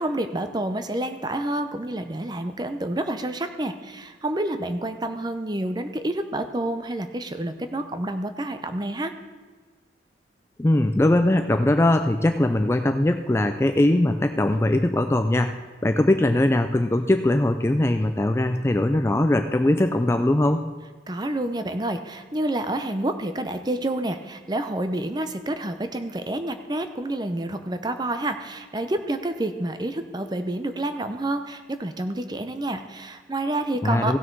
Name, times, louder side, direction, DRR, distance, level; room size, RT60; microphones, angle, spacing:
voice 1, 0.0-9.1 21.1-34.2, right 1 dB, 25° right, 8 dB, 0.6 m, -28 dB
voice 2, 10.6-15.6 15.8-20.6 33.8-34.2, left 1 dB, 15° left, 7 dB, 0.3 m, -21 dB
16.5 x 6.2 x 4.6 m, 1.4 s
head